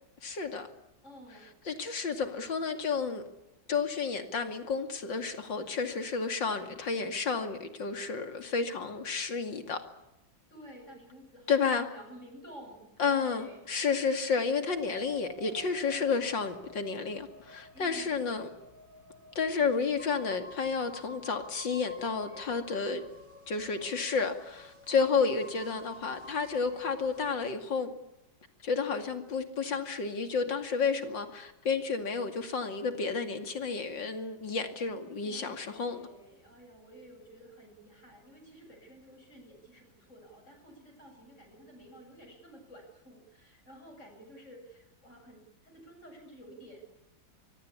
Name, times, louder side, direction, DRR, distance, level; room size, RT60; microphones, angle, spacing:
voice 1, 0.2-0.7 1.7-3.2 3.7-9.8 11.5-11.9 13.0-18.5 19.3-23.0 23.5-27.9 28.6-36.1, left 5 dB, 70° left, 7 dB, 3.1 m, -31 dB
voice 2, 1.0-1.6 10.5-13.7 17.7-18.3 24.9-25.3 35.2-46.8, equal, 35° left, 3 dB, 8.0 m, -52 dB
sound 1, 14.7-27.3, equal, 45° right, 4.8 m, -51 dB
24.5 x 23.0 x 8.6 m, 0.91 s
omnidirectional pair, 2.1 m